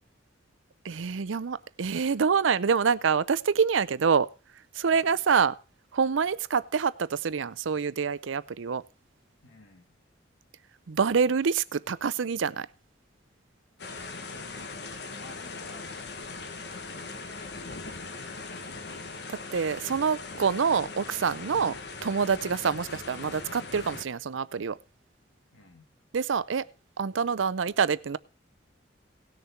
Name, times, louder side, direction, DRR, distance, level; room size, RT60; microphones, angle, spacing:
voice 1, 0.8-4.3 4.7-5.6 5.9-8.8 10.9-12.7 19.3-24.8 26.1-26.7 27.0-28.2, right 6 dB, 85° right, 0.5 m, -26 dB
voice 2, 9.4-10.0 14.3-16.0 16.4-17.2 19.9-20.1 25.5-25.9, left 2 dB, 90° left, 2.6 m, -55 dB
sound 1, 13.8-24.1, left 3 dB, 55° left, 1.2 m, -40 dB
17.5 x 6.7 x 4.4 m
head